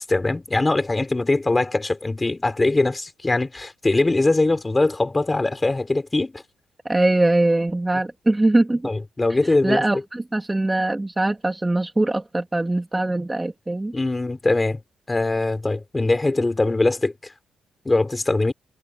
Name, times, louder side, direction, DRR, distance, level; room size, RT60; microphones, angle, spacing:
voice 1, 0.1-6.4 8.8-9.9 13.9-14.8 15.1-17.3 17.8-18.5, left 2 dB, 20° left, 4.1 m, -22 dB
voice 2, 6.8-8.9 9.6-13.9, right 2 dB, 15° right, 3.2 m, -22 dB
cardioid pair, 100°, 0 cm